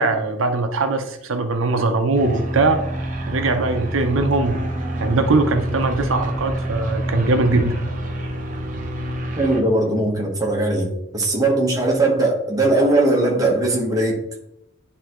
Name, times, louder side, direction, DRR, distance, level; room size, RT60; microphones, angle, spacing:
voice 1, 0.0-2.8 3.3-4.6 5.0-7.8, right 3 dB, 75° right, 6 dB, 0.6 m, -20 dB
sound 1, 2.1-9.6, right 1 dB, 40° right, 0.8 m, -27 dB
voice 2, 9.4-14.2, right 2 dB, 15° right, -1 dB, 1.1 m, -19 dB
9.8 x 3.4 x 3.0 m, 0.81 s
head